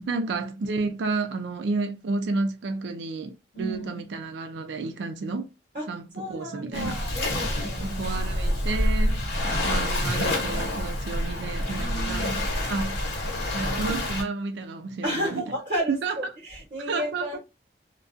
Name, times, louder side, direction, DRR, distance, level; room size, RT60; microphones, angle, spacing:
voice 1, 0.1-5.5 5.9-7.0 7.8-9.2 9.6-13.0 13.5-15.5 15.9-16.2 16.8-17.4, right 3 dB, 90° right, 0.4 m, -31 dB
voice 2, 3.5-4.0 5.7-5.8 6.1-8.0 11.7-12.4 15.0-17.4, right 1 dB, 40° right, 1.0 m, -33 dB
Waves surf, 6.7-14.2, left 1 dB, 85° left, 1.0 m, -27 dB
2.3 x 2.2 x 2.5 m
head